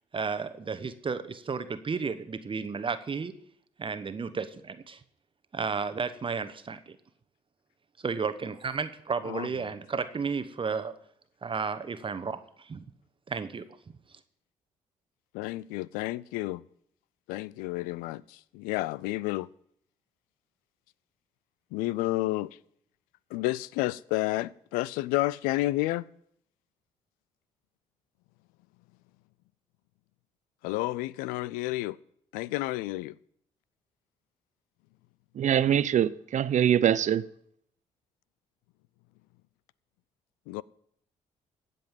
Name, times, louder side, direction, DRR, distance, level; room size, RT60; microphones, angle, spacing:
voice 1, 0.1-3.3 3.8-5.0 5.5-7.0 8.0-10.9 11.4-12.8 13.3-13.7, right 5 dB, 35° right, 1.0 m, -33 dB
voice 2, 15.3-16.6 17.3-19.5 21.7-22.6 23.3-26.0 30.6-32.0 32.3-33.1 40.5-40.6, left 18 dB, 90° left, 0.4 m, -30 dB
voice 3, 35.4-37.2, right 9 dB, 60° right, 0.7 m, -23 dB
16.0 x 5.4 x 9.1 m
supercardioid pair, 60°, 14 cm